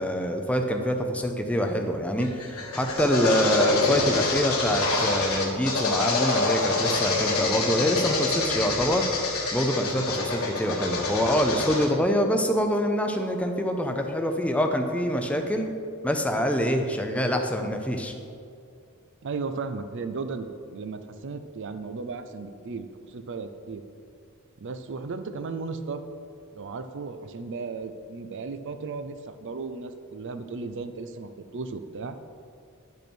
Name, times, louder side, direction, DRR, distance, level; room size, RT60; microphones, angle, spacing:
voice 1, 0.0-2.3 2.7-9.0 9.5-15.7 16.0-18.1, equal, 5° left, 4 dB, 0.6 m, -25 dB
sound 1, 2.2-11.9, left 3 dB, 70° left, 1.5 m, -26 dB
voice 2, 19.2-23.8 24.6-26.0 26.5-32.2, right 4 dB, 60° right, 9 dB, 0.5 m, -35 dB
10.0 x 5.4 x 4.5 m, 2.4 s
head